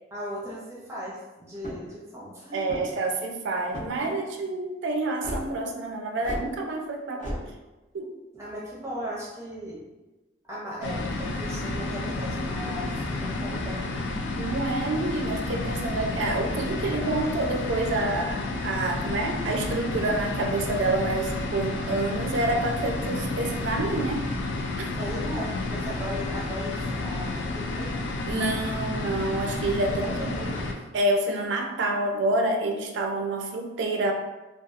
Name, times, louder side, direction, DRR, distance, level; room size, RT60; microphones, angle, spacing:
voice 1, 0.1-2.9 8.3-9.8 10.5-14.0 25.0-28.0 29.9-30.8, equal, 15° right, -6 dB, 0.6 m, -37 dB
sound 1, 1.5-2.0 2.6-3.1 3.7-4.1 5.2-5.4 6.2-6.5 7.2-7.4, equal, 40° left, 0.9 m, -34 dB
voice 2, 2.5-7.3 7.9-8.1 14.4-24.3 24.8-24.9 28.2-30.5 30.9-34.1, right 2 dB, 75° right, 3 dB, 0.4 m, -28 dB
sound 2, 10.8-30.7, left 2 dB, 80° left, 0.4 m, -31 dB
2.6 x 2.3 x 2.4 m, 1.1 s
head